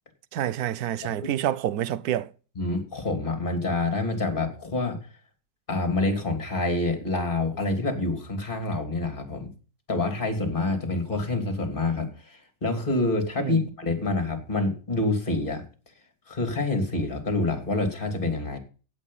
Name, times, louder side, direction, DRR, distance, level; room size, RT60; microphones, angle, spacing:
voice 1, 0.3-2.3 13.4-13.6, right 12 dB, 65° right, 1.2 m, -28 dB
voice 2, 2.6-5.0 5.7-9.5 9.9-15.6 16.3-18.6, left 2 dB, 30° left, 3.1 m, -27 dB
16.0 x 8.5 x 5.6 m
omnidirectional pair, 1.9 m